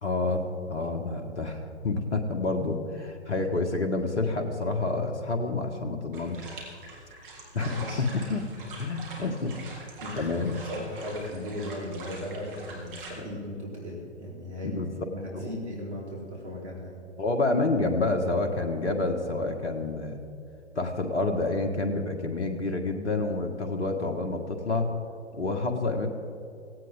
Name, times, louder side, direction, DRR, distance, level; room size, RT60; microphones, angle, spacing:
voice 1, 0.0-6.5 7.5-7.7 8.0-8.4 8.8-9.6 10.2-10.6 14.7-14.9 15.3-15.5 17.2-20.2 20.8-24.9 25.3-26.1, left 3 dB, 75° left, 4 dB, 1.8 m, -28 dB
sound 1, 6.1-13.1, right 2 dB, 50° right, 3.9 m, -44 dB
voice 2, 7.6-8.1 8.6-8.8 10.0-14.8 15.1-17.0, left 1 dB, 70° right, -3 dB, 4.7 m, -37 dB
17.5 x 17.0 x 3.8 m, 2.5 s
figure-of-eight pair, 120°, 35 cm